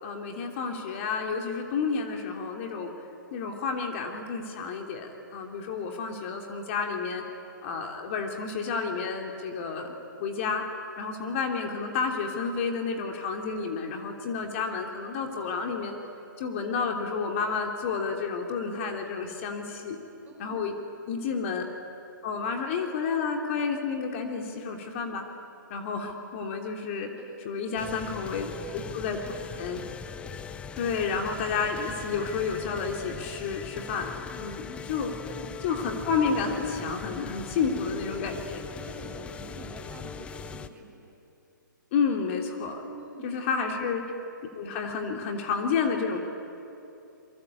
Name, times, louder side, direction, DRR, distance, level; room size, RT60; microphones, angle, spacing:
voice 1, 0.0-2.9 3.3-7.2 7.6-10.6 11.0-15.9 16.4-20.0 20.4-20.7 21.1-21.6 22.2-25.2 25.7-27.1 27.4-28.5 28.9-29.2 29.6-29.8 30.8-35.1 35.6-38.6 41.9-42.8 43.2-44.0 44.5-46.2, left 5 dB, 35° left, 3 dB, 3.1 m, -30 dB
voice 2, 20.3-20.7 27.2-27.5 28.0-28.1 28.4-29.6 35.2-35.7 38.7-41.1 43.0-43.4 43.7-44.0, right 2 dB, 10° right, -2 dB, 6.9 m, -47 dB
sound 1, 27.8-40.7, left 6 dB, 10° left, 0.7 m, -40 dB
28.5 x 23.5 x 8.4 m, 2.8 s
hypercardioid pair, 140°, 11 cm